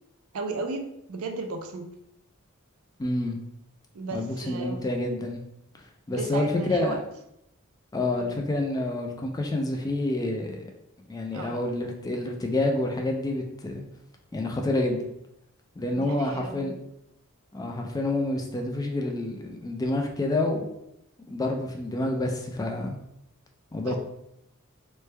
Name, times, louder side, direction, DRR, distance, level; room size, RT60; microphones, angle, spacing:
voice 1, 0.3-1.8 3.9-4.8 6.1-7.0 8.2-8.3 11.3-11.6 15.9-16.8 23.8-24.0, right 3 dB, 75° right, 4 dB, 0.5 m, -34 dB
voice 2, 3.0-3.4 4.1-5.4 6.1-7.0 7.9-10.7 11.1-13.8 14.3-15.0 15.8-16.7 17.5-20.6 21.3-23.0 23.7-24.0, left 2 dB, 15° left, 2 dB, 0.3 m, -28 dB
3.2 x 2.1 x 3.2 m, 0.80 s
head